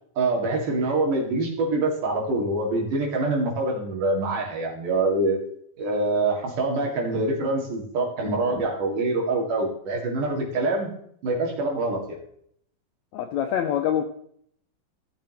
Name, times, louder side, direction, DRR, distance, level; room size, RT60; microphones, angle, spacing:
voice 1, 0.2-5.4 5.8-11.0 11.2-12.2, right 2 dB, 70° right, -1 dB, 3.6 m, -25 dB
voice 2, 13.1-14.0, left 10 dB, 85° left, 5 dB, 1.6 m, -25 dB
16.0 x 7.2 x 3.0 m, 0.66 s
omnidirectional pair, 3.9 m